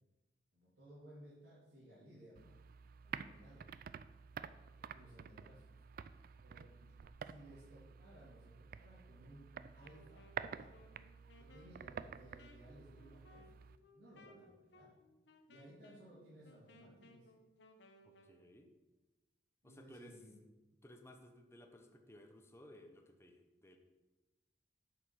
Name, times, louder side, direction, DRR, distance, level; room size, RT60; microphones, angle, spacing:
voice 1, 0.5-2.6 3.0-3.7 4.8-5.8 6.4-6.9 7.2-10.9 11.4-13.5 13.9-14.9 15.5-17.3 19.6-20.4, right 1 dB, 70° right, -10 dB, 2.7 m, -59 dB
sound 1, 2.4-13.8, right 7 dB, 55° right, 0.3 m, -50 dB
Wind instrument woodwind instrument, 9.7-18.4, left 2 dB, 80° left, 0.9 m, -64 dB
voice 2, 18.0-18.7 19.6-20.2 20.8-23.8, left 1 dB, 15° left, 5 dB, 0.7 m, -58 dB
8.2 x 5.0 x 5.8 m, 1.1 s
head